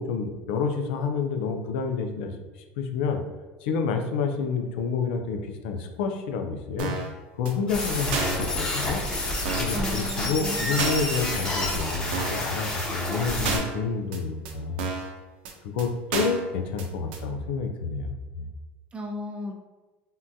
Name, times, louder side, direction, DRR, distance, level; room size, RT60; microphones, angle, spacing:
voice 1, 0.0-2.3 2.8-3.2 3.6-7.0 7.4-9.0 9.6-14.8 15.6-18.1, left 5 dB, 85° left, 5 dB, 0.5 m, -29 dB
sound 1, 6.8-7.1 7.4-7.5 7.8-7.9 8.1-8.4 8.8-8.9 9.1-9.2 9.4-9.8 10.1-10.2 10.4-10.5 10.8-11.1 11.4-11.5 11.8-11.9 12.1-12.4 12.8-12.9 13.1-13.2 13.4-13.8 14.1-14.2 14.4-14.5 14.8-15.1 15.4-15.5 15.8-15.9 16.1-16.4 16.8-16.9 17.1-17.2, right 5 dB, 80° right, 0.6 m, -31 dB
sound 2, 7.7-13.6, left 1 dB, 15° left, 0.9 m, -29 dB
voice 2, 9.7-10.7 18.9-19.5, left 1 dB, 20° right, 1 dB, 0.5 m, -34 dB
3.6 x 2.3 x 2.7 m, 1.2 s
supercardioid pair, 135°, 6 cm